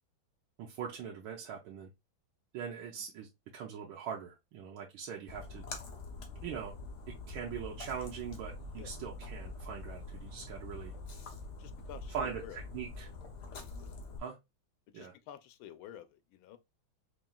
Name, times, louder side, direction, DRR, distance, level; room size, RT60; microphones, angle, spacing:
voice 1, 0.6-1.9 2.5-5.6 6.4-6.8 7.1-10.9 12.1-13.1 14.2-14.4 14.9-15.1, right 7 dB, 85° right, 1.6 m, -42 dB
Splash splatter, 5.3-14.2, left 3 dB, 60° left, 1.3 m, -45 dB
voice 2, 11.6-12.6 13.8-14.0 14.9-16.6, left 11 dB, 85° left, 1.4 m, -50 dB
4.7 x 3.1 x 2.3 m
omnidirectional pair, 2.2 m